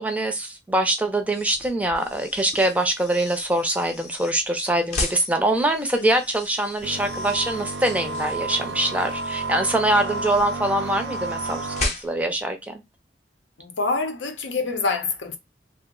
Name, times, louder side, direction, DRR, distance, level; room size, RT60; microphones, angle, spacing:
voice 1, 0.0-12.8, right 1 dB, 10° right, 0.4 m, -24 dB
sound 1, 1.2-12.4, left 2 dB, 35° left, 0.6 m, -36 dB
sound 2, 6.8-11.9, right 3 dB, 80° right, 0.6 m, -31 dB
voice 2, 13.6-15.4, left 4 dB, 90° left, 0.7 m, -26 dB
2.9 x 2.0 x 3.6 m
head